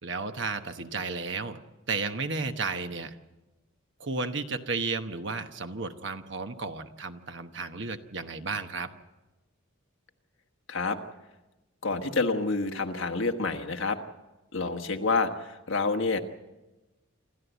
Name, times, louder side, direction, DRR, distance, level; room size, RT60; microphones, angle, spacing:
voice 1, 0.0-1.6 1.9-3.2 4.0-8.9, right 4 dB, 55° right, 8 dB, 1.1 m, -33 dB
voice 2, 11.8-14.0 14.5-16.2, left 3 dB, 65° left, 6 dB, 1.4 m, -28 dB
27.0 x 13.0 x 8.2 m, 1.1 s
head